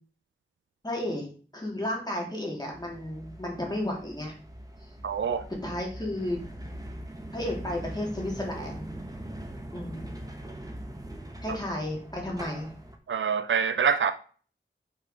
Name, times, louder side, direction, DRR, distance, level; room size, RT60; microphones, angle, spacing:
voice 1, 0.8-1.3 1.5-4.3 5.6-6.4 7.3-8.9 9.7-10.2 11.4-12.7, left 1 dB, 20° left, 2.6 m, -33 dB
sound 1, 2.7-13.0, right 1 dB, 20° right, 1.1 m, -41 dB
voice 2, 5.0-5.4 13.1-14.1, right 6 dB, 85° right, 0.4 m, -25 dB
5.5 x 4.6 x 5.0 m
wide cardioid pair, 75°, 19 cm